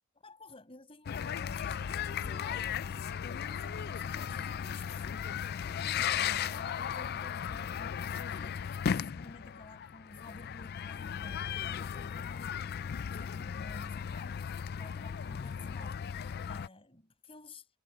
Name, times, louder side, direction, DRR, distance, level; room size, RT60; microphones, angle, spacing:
voice 1, 0.2-8.6 8.9-14.4 14.8-17.7, left 2 dB, 25° left, 6.2 m, -53 dB
sound 1, 1.1-16.7, left 8 dB, 50° left, 0.4 m, -36 dB
sound 2, 1.3-10.9, right 1 dB, 40° right, 5.5 m, -59 dB
head